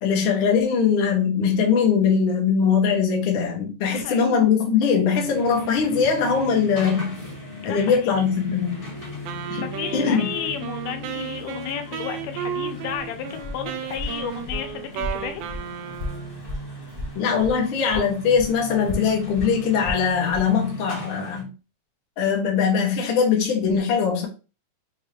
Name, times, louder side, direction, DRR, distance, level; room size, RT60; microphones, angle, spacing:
voice 1, 0.0-7.1 7.6-8.8 9.5-9.6 9.9-10.2 17.1-21.5 22.2-24.3, left 6 dB, 65° left, 1.2 m, -21 dB
voice 2, 3.9-4.3 7.6-8.1 9.5-15.4, left 8 dB, 85° left, 2.3 m, -33 dB
sound 1, 5.2-21.4, left 1 dB, 30° left, 1.0 m, -39 dB
Wind instrument woodwind instrument, 9.3-16.4, right 9 dB, 80° right, 1.8 m, -33 dB
Walk footsteps, 12.9-17.6 17.9-20.5, left 1 dB, 35° right, 0.9 m, -34 dB
6.1 x 2.4 x 3.2 m
omnidirectional pair, 3.8 m